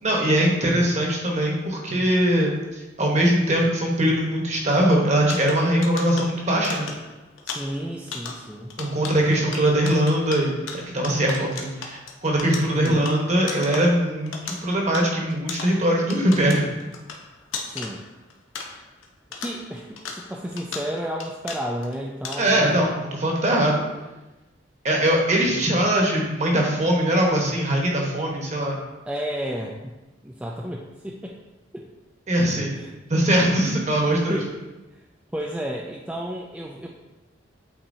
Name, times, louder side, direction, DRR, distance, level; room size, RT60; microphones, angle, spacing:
voice 1, 0.0-6.9 8.8-16.6 22.4-23.8 24.8-28.8 32.3-32.7 33.1-34.4, right 1 dB, 35° right, -1 dB, 1.2 m, -21 dB
sound 1, 5.2-19.1 19.3-21.9 22.2-22.7, left 4 dB, 85° left, 0.8 m, -37 dB
voice 2, 7.4-8.7 12.6-13.1 17.7-18.0 19.4-22.8 29.1-29.9 30.2-31.4 31.7-31.9 32.7-32.9 34.3-34.6 34.9-35.0 35.3-36.9, equal, 5° right, -3 dB, 0.4 m, -32 dB
8.6 x 4.1 x 2.7 m, 1.1 s
head